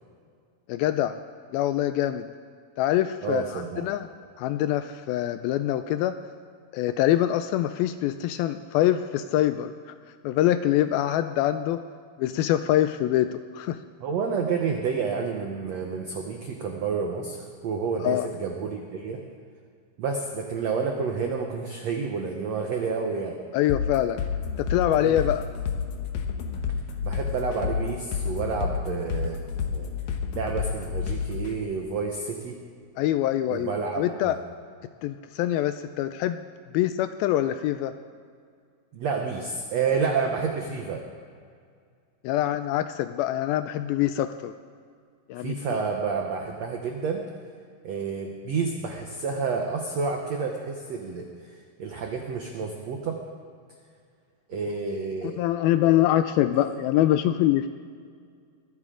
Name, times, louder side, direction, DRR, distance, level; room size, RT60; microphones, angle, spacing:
voice 1, 0.7-1.2 1.5-2.3 2.8-4.1 4.4-6.2 6.7-9.9 10.2-11.8 12.2-13.8 18.0-18.3 23.5-24.2 24.6-25.5 33.0-34.4 35.0-36.4 36.7-37.9 42.2-44.5 45.3-45.6 55.2-57.7, left 13 dB, 85° left, 10 dB, 2.2 m, -24 dB
voice 2, 3.2-3.9 14.0-19.2 20.0-23.4 25.0-25.2 27.0-29.4 29.7-29.9 30.3-32.6 33.5-34.4 38.9-41.0 45.4-47.2 47.8-53.2 54.5-55.4 55.8-56.0 56.6-56.8, right 5 dB, 85° right, 2 dB, 1.5 m, -29 dB
sound 1, 23.7-31.5, left 6 dB, 65° left, 1.9 m, -30 dB
21.5 x 15.0 x 3.8 m, 2.1 s
omnidirectional pair, 4.6 m